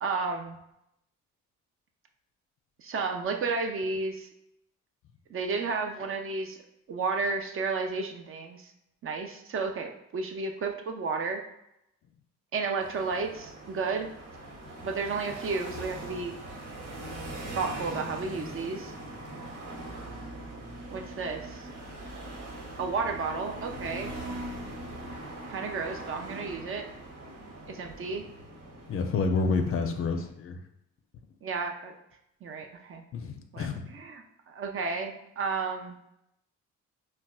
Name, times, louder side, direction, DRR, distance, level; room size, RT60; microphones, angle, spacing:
voice 1, 0.0-0.6 2.8-4.3 5.3-6.6 6.9-8.7 9.0-11.4 12.5-14.1 14.8-16.3 17.5-18.9 20.9-21.6 22.8-24.1 25.5-26.9 27.7-28.3 31.4-31.9 32.4-33.0 33.5-35.9, right 4 dB, 45° right, 4 dB, 0.5 m, -32 dB
sound 1, 12.8-30.3, right 1 dB, 80° right, 1.2 m, -41 dB
voice 2, 28.9-30.6 33.1-33.9, left 4 dB, 45° left, 6 dB, 0.4 m, -29 dB
4.1 x 2.2 x 2.3 m, 0.81 s
cardioid pair, 90°, 30 cm